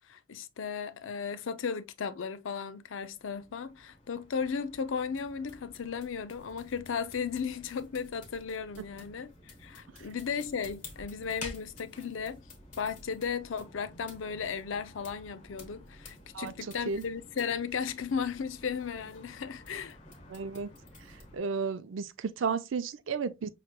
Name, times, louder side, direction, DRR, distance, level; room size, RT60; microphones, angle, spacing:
voice 1, 0.1-12.4 12.8-20.0, left 6 dB, 80° left, 0.5 m, -35 dB
sound 1, 2.9-21.4, left 2 dB, 40° left, 1.1 m, -51 dB
voice 2, 20.3-20.7 21.3-23.5, right 5 dB, 80° right, 0.5 m, -33 dB
5.8 x 3.1 x 2.2 m
head